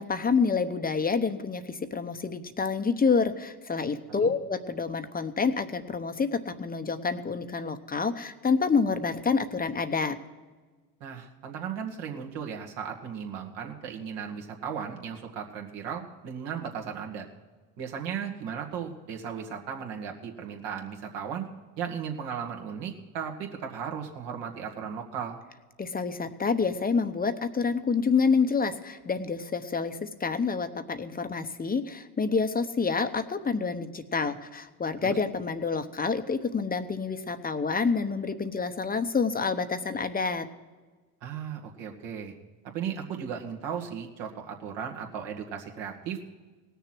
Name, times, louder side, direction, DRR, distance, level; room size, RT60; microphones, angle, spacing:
voice 1, 0.0-10.2 25.8-40.5, left 5 dB, 20° left, 9 dB, 0.9 m, -28 dB
voice 2, 11.0-17.3 17.8-21.5 21.8-25.4 35.0-35.2 41.2-42.4 42.7-46.4, right 7 dB, 65° right, 1 dB, 2.1 m, -36 dB
18.0 x 6.8 x 6.1 m, 1.3 s
supercardioid pair, 85°, 47 cm